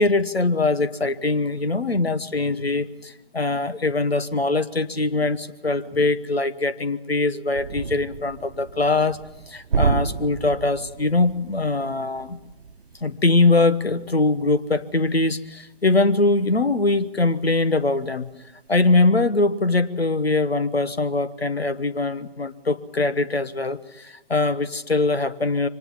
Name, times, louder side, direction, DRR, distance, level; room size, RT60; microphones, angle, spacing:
voice 1, 0.0-9.2 9.5-12.4 13.0-18.3 18.7-25.7, left 3 dB, 85° left, 14 dB, 1.2 m, -22 dB
sound 1, 7.5-17.3 17.6-17.8 18.2-18.9, right 5 dB, 60° right, 1.0 m, -32 dB
24.0 x 19.0 x 7.4 m, 0.92 s
figure-of-eight pair, 135°, 30 cm